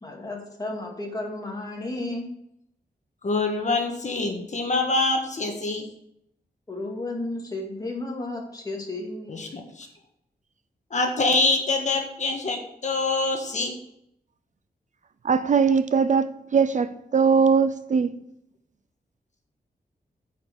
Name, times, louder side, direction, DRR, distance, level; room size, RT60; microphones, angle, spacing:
voice 1, 0.0-2.3 6.7-9.4, left 2 dB, 20° left, 2.2 m, -33 dB
voice 2, 3.2-5.8 9.3-9.9 10.9-13.7, left 3 dB, 45° left, 1.6 m, -25 dB
voice 3, 15.2-18.2, right 5 dB, 50° right, 0.4 m, -21 dB
9.2 x 5.4 x 7.3 m
wide cardioid pair, 155°, 17 cm